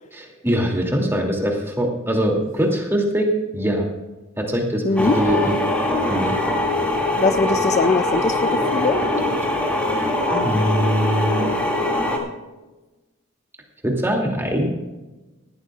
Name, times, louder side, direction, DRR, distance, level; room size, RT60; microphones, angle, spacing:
voice 1, 0.2-3.9 4.4-5.5 6.1-6.4 10.4-11.4 13.8-14.7, equal, 10° right, 0 dB, 2.6 m, -22 dB
voice 2, 4.8-5.2 7.2-9.0, left 3 dB, 30° left, 9 dB, 0.4 m, -21 dB
sound 1, 5.0-12.2, left 1 dB, 5° left, 2.3 m, -22 dB
19.5 x 15.0 x 2.4 m, 1.1 s
head